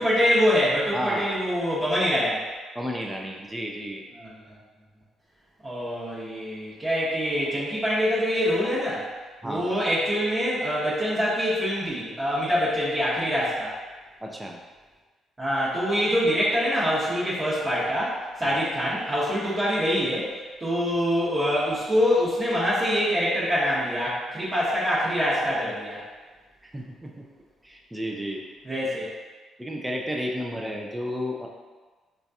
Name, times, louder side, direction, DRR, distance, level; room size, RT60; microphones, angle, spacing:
voice 1, 0.0-2.4 4.2-4.3 5.6-9.0 9.4-13.7 15.4-20.3 20.6-26.0 28.6-29.1, equal, 25° right, -10 dB, 1.0 m, -25 dB
voice 2, 0.9-1.4 2.8-4.0 9.4-9.8 14.2-14.6 18.4-18.5 26.6-27.2 27.6-28.4 29.6-31.5, equal, 10° right, 0 dB, 0.4 m, -32 dB
3.8 x 2.3 x 2.6 m, 1.3 s
cardioid pair, 90°, 0 cm